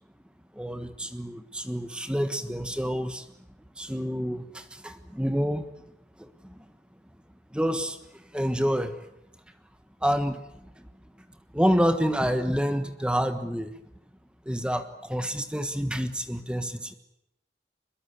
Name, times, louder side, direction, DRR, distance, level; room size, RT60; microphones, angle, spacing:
voice 1, 0.5-3.3 3.8-5.7 6.2-6.7 7.5-9.0 10.0-10.9 11.5-13.7 14.4-16.9, equal, 5° right, 8 dB, 1.4 m, -28 dB
25.0 x 22.0 x 8.4 m, 0.84 s
head